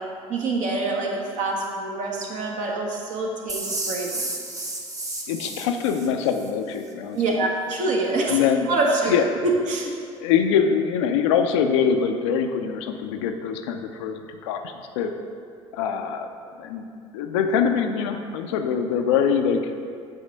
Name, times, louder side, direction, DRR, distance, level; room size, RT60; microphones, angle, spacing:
voice 1, 0.0-4.3 7.1-9.2 9.7-9.9, right 2 dB, 50° right, -1 dB, 1.3 m, -26 dB
sound 1, 3.5-6.5, right 2 dB, 20° right, 1.0 m, -32 dB
voice 2, 5.3-7.5 8.3-8.7 9.1-9.3 10.1-15.1 15.7-16.3 16.6-16.9 17.1-19.6, left 7 dB, 65° left, 5 dB, 0.5 m, -23 dB
9.0 x 3.6 x 5.3 m, 2.3 s
figure-of-eight pair, 55°, 17 cm